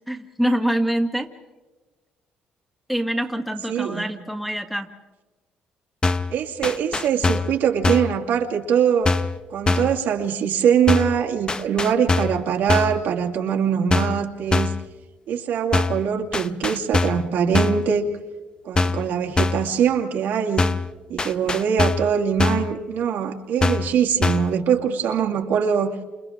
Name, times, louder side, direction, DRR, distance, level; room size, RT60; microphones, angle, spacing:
voice 1, 0.1-1.3 2.9-4.9, right 1 dB, ahead, 3 dB, 1.9 m, -25 dB
voice 2, 3.7-4.0 6.3-9.1 9.5-14.7 15.3-18.1 18.7-20.6 21.1-25.9, right 7 dB, 75° right, 1 dB, 2.4 m, -22 dB
sound 1, 6.0-6.3 6.6-7.6 7.8-8.2 9.1-9.4 9.7-10.0 10.9-11.2 11.5-12.4 12.7-13.0 13.9-14.2 14.5-14.8 15.7-16.0 16.3-17.3 17.5-17.9 18.8-19.1 19.4-19.7 20.6-20.9 21.2-22.1 22.4-22.7 23.6-23.9 24.2-24.5, left 3 dB, 25° left, 0.9 m, -22 dB
29.0 x 28.5 x 3.7 m, 1.2 s
cardioid pair, 90°, 3 cm